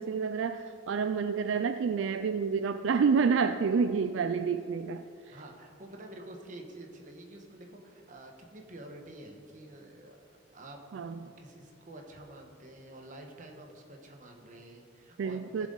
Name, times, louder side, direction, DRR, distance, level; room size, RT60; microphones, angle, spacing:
voice 1, 0.0-5.4 10.9-11.2 15.2-15.7, right 5 dB, 70° right, 9 dB, 0.3 m, -29 dB
voice 2, 5.3-10.2 10.5-15.7, right 1 dB, 40° right, 2 dB, 1.2 m, -49 dB
15.5 x 7.4 x 3.9 m, 2.5 s
head